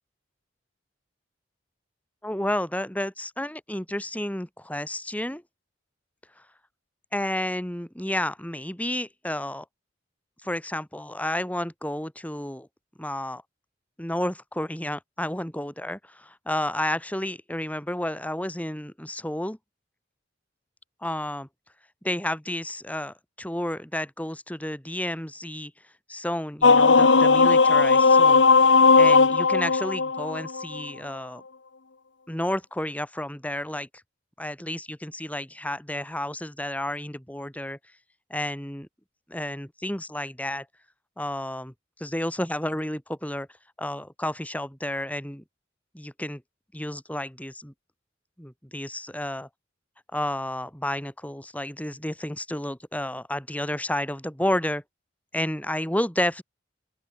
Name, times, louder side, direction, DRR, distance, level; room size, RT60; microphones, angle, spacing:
voice 1, 2.2-5.4 7.1-9.6 10.4-12.7 13.0-13.4 14.0-19.6 21.0-21.5 22.0-25.7 26.1-28.4 29.0-31.4 32.3-33.9 34.4-37.8 38.3-38.9 39.3-40.7 41.2-41.7 42.0-43.5 43.8-45.4 45.9-46.4 46.7-47.7 48.4-49.5 50.1-54.8 55.3-56.4, left 1 dB, 10° left, 4.8 m, -31 dB
sound 1, 26.6-30.9, left 4 dB, 75° left, 1.2 m, -17 dB
open air
head